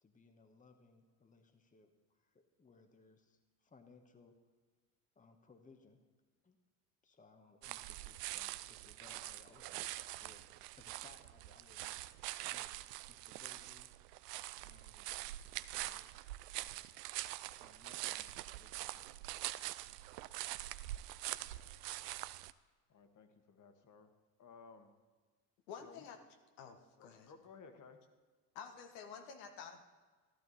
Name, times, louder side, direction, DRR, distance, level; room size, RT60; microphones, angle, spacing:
voice 1, 0.0-4.4 5.1-6.0 6.4-6.6 7.0-12.0 12.4-13.9 14.6-15.2 15.5-16.3 16.6-17.0 17.6-19.1, left 4 dB, 15° left, 6 dB, 1.3 m, -64 dB
sound 1, 7.6-22.5, right 16 dB, 80° right, 0.6 m, -44 dB
voice 2, 22.9-24.1 24.4-24.9 25.8-26.2 26.9-28.0, left 5 dB, 40° left, 7 dB, 1.7 m, -58 dB
voice 3, 25.7-26.2 26.6-27.3 28.5-29.8, left 7 dB, 70° left, 5 dB, 1.4 m, -50 dB
14.5 x 12.0 x 4.2 m, 1.4 s
hypercardioid pair, 75°, 47 cm